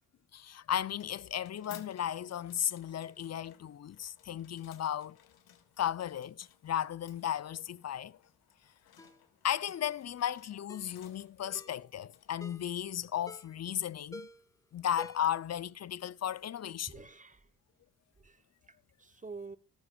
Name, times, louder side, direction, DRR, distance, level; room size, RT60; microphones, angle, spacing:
voice 1, 0.3-5.2 5.8-8.2 9.4-14.3 14.7-16.9, left 10 dB, 45° left, 0.5 m, -35 dB
sound 1, 0.7-13.8, left 10 dB, 85° left, 1.6 m, -60 dB
Ringtone, 9.0-9.2 9.8-10.1 10.7-10.9 11.5-11.8 12.4-12.7 13.3-13.6 14.1-14.5 15.0-15.4 15.7-15.8, left 1 dB, 10° left, 1.3 m, -49 dB
voice 2, 16.9-17.5 18.2-19.6, right 4 dB, 20° right, 1.1 m, -49 dB
15.5 x 14.0 x 2.4 m
cardioid pair, 80°, 36 cm